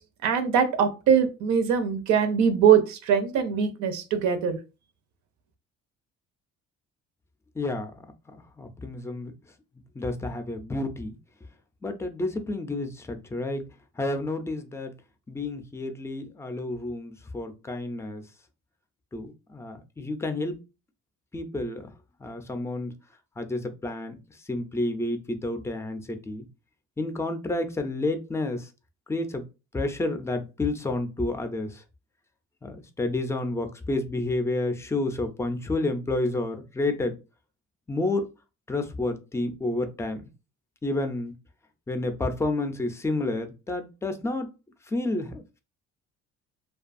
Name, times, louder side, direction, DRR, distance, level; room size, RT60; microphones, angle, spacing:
voice 1, 0.2-4.6, right 7 dB, 75° right, 9 dB, 0.5 m, -22 dB
voice 2, 7.5-7.9 8.3-9.3 9.9-11.2 11.8-13.6 14.0-14.9 15.3-18.2 19.1-20.6 21.3-21.9 22.2-22.9 23.4-26.5 27.0-28.7 29.1-29.5 29.7-31.8 32.6-37.2 37.9-38.3 38.7-40.3 40.8-41.3 41.9-44.5 44.9-45.6, left 2 dB, 10° left, 7 dB, 0.4 m, -30 dB
2.5 x 2.3 x 2.4 m, 0.29 s
cardioid pair, 100°, 29 cm